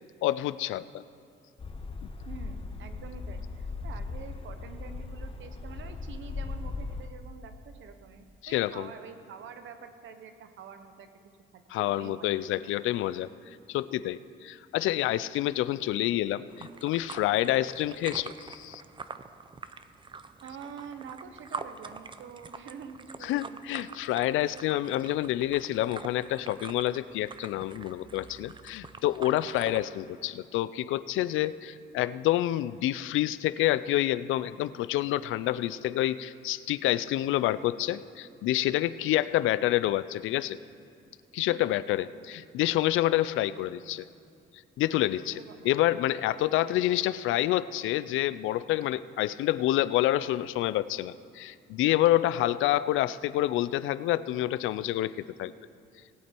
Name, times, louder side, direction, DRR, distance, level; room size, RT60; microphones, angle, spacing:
voice 1, 0.2-0.9 8.4-8.9 11.7-13.3 13.7-18.8 23.2-40.6 41.3-44.1 44.8-55.5, left 14 dB, 85° left, 15 dB, 0.4 m, -28 dB
sound 1, 1.6-7.1, left 3 dB, 25° left, 1.1 m, -38 dB
voice 2, 2.2-12.7 20.4-24.0 41.4-41.7 45.3-46.0, right 6 dB, 75° right, 8 dB, 1.0 m, -47 dB
sound 2, 16.5-29.9, right 4 dB, 25° right, 0.5 m, -45 dB
19.0 x 8.3 x 4.5 m, 2.5 s
cardioid pair, 90°, 20 cm